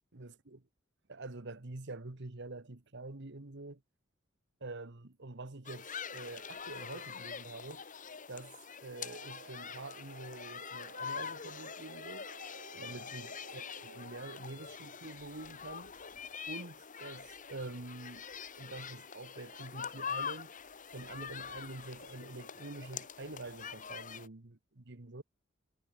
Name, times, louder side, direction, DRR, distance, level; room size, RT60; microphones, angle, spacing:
voice 1, 0.1-0.6 1.1-3.8 4.6-7.8 8.3-12.3 12.8-15.9 16.5-18.3 18.6-20.5 20.9-25.2, right 2 dB, 60° right, 1.5 m, -46 dB
sound 1, 5.6-24.3, left 7 dB, 40° left, 2.0 m, -44 dB
sound 2, 9.0-14.2, right 5 dB, 85° right, 0.8 m, -55 dB
head